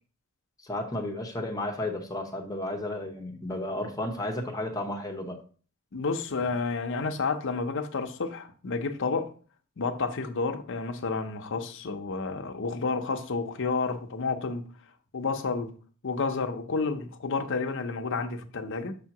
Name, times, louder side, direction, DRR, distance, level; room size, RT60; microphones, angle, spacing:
voice 1, 0.6-5.4, left 1 dB, 15° left, 0.9 m, -33 dB
voice 2, 5.9-9.3 9.8-14.7 15.1-15.7 16.0-19.0, left 4 dB, 60° left, 0.7 m, -30 dB
6.8 x 2.8 x 5.8 m
head